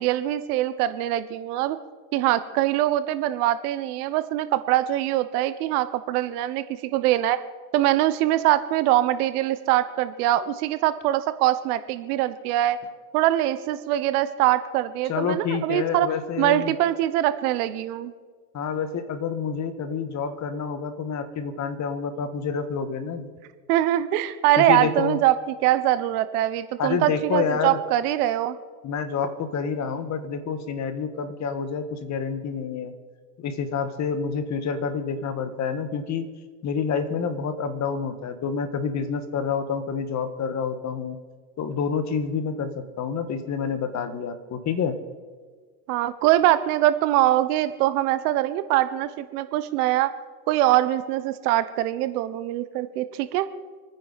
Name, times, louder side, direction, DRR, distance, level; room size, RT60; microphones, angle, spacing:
voice 1, 0.0-1.8 2.1-6.6 6.9-7.4 7.7-12.8 13.1-16.1 16.4-18.1 23.7-28.6 45.9-50.1 50.5-53.5, right 14 dB, 65° right, 13 dB, 1.2 m, -23 dB
voice 2, 15.1-16.7 18.5-23.3 24.6-25.2 26.8-27.8 28.8-32.9 33.4-36.3 36.6-41.2 41.6-45.0, left 6 dB, 35° left, 10 dB, 1.7 m, -28 dB
27.0 x 10.0 x 4.2 m, 1.5 s
supercardioid pair, 110°, 49 cm